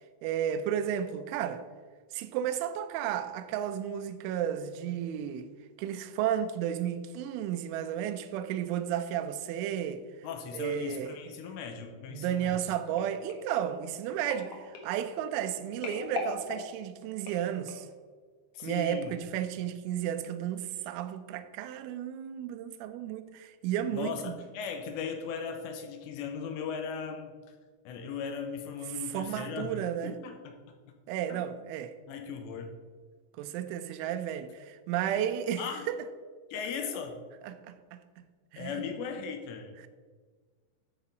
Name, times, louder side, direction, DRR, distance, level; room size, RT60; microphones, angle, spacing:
voice 1, 0.2-1.6 2.1-5.5 5.8-10.0 10.5-11.1 12.1-17.9 18.6-24.3 28.9-30.1 31.1-31.9 33.4-36.0 37.4-38.0 38.5-38.8, right 10 dB, 90° right, 3.1 m, -33 dB
voice 2, 10.2-12.8 18.5-19.2 23.9-27.3 27.9-29.8 30.0-30.6 31.3-31.4 32.1-32.7 35.6-35.9 36.5-37.2 38.6-39.8, left 6 dB, 80° left, 2.8 m, -38 dB
sound 1, 13.0-18.0 18.6-18.8 19.1-19.2, left 3 dB, 65° left, 2.1 m, -41 dB
12.5 x 4.2 x 5.1 m
omnidirectional pair, 5.4 m